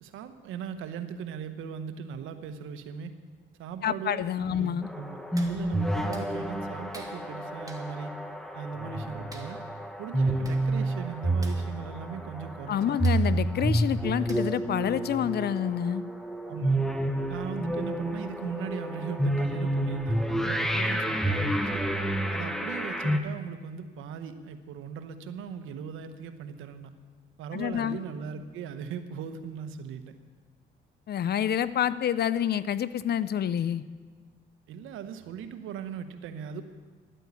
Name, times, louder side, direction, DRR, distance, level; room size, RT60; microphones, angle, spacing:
voice 1, 0.0-3.1 3.6-8.2 8.5-9.6 10.0-13.0 16.4-16.8 17.3-21.8 22.3-26.9 27.4-30.1 34.7-36.6, right 7 dB, 90° right, 9 dB, 1.0 m, -39 dB
voice 2, 3.8-4.9 12.7-16.0 27.5-28.0 31.1-33.8, left 9 dB, 55° left, 16 dB, 0.6 m, -28 dB
sound 1, 4.8-23.2, right 1 dB, ahead, 1.2 m, -29 dB
Hands, 5.3-5.6 6.1-6.3 6.9-7.1 7.7-7.8 9.3-9.5 10.2-10.3 10.4-10.6 10.9-11.1 11.4-11.6 13.0-13.2 14.3-14.6 15.1-15.2, right 2 dB, 15° right, 2.2 m, -47 dB
12.5 x 9.2 x 8.4 m, 1.4 s
cardioid pair, 90°, 20 cm